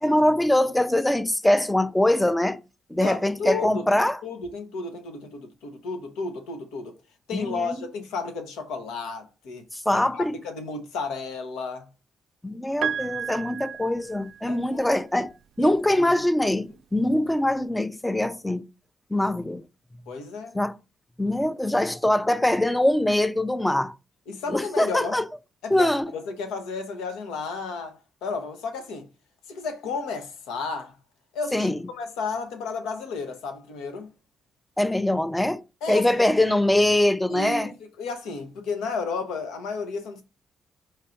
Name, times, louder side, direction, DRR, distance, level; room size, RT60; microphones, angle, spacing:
voice 1, 0.0-2.6 2.9-4.2 7.3-7.7 9.7-10.3 12.4-18.7 19.1-19.6 20.5-20.8 21.2-23.9 24.5-25.2 25.7-26.1 31.5-31.8 34.8-35.6 35.9-37.7, left 1 dB, 10° left, 0.4 m, -23 dB
voice 2, 3.0-6.9 7.3-9.7 9.9-11.9 14.5-14.9 15.6-16.1 20.1-20.6 24.3-25.2 25.6-29.1 29.5-30.9 31.3-34.1 35.8-36.1 37.3-40.2, left 4 dB, 90° left, 0.9 m, -33 dB
Piano, 12.8-14.8 16.1-16.2, right 8 dB, 70° right, 0.3 m, -32 dB
4.4 x 2.5 x 4.4 m
supercardioid pair, 65°, 0 cm